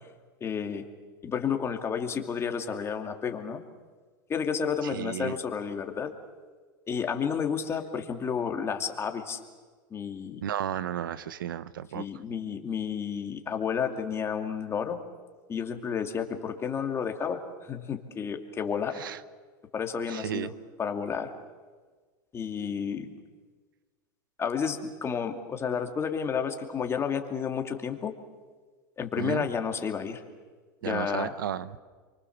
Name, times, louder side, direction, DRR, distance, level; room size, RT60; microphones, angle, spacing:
voice 1, 0.4-0.8 1.2-3.6 4.3-6.1 6.9-9.4 9.9-10.4 11.9-15.0 15.5-19.0 19.7-20.5 20.8-21.3 22.3-23.1 24.4-28.1 29.0-30.2 30.8-31.3, left 6 dB, 25° left, 5 dB, 2.5 m, -31 dB
voice 2, 4.9-5.4 10.4-12.0 18.9-19.2 20.1-20.5 29.2-29.5 30.8-31.8, right 10 dB, 90° right, 17 dB, 1.0 m, -33 dB
28.0 x 24.0 x 7.3 m, 1.4 s
supercardioid pair, 120°, 11 cm